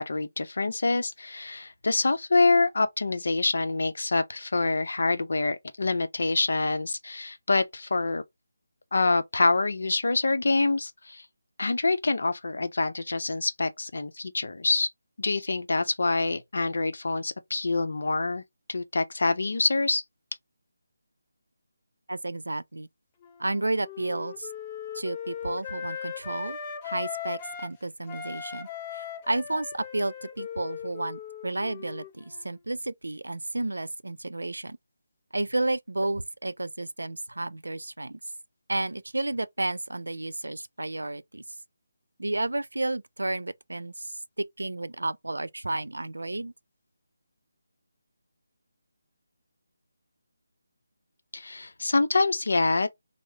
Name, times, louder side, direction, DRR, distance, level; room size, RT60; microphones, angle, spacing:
voice 1, 0.0-8.2 8.9-11.2 11.6-14.9 15.2-18.4 18.7-20.0 51.3-52.9, left 3 dB, 65° left, 0.6 m, -26 dB
voice 2, 22.1-22.9 23.4-24.5 24.9-26.6 26.8-34.8 35.3-38.2 38.7-41.4 42.2-46.5, right 2 dB, 85° right, 0.4 m, -32 dB
Wind instrument woodwind instrument, 23.2-27.7 28.0-32.6, left 8 dB, 25° left, 0.5 m, -39 dB
3.1 x 2.0 x 3.3 m
figure-of-eight pair, 160°, 0 cm